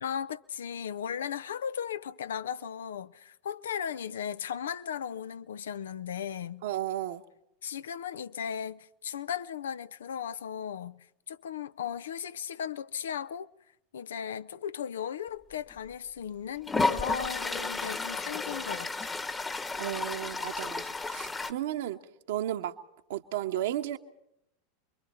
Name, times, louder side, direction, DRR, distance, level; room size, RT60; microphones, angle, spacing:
voice 1, 0.0-6.6 7.6-13.5 13.9-19.1, left 8 dB, 70° left, 0.7 m, -36 dB
voice 2, 6.6-7.2 19.8-22.0 22.3-22.7 23.1-24.0, right 12 dB, 60° right, 1.3 m, -33 dB
Toilet flush, 15.7-15.8 16.7-21.5, left 3 dB, 15° left, 1.3 m, -32 dB
29.0 x 23.0 x 4.4 m
figure-of-eight pair, 85°, 0 cm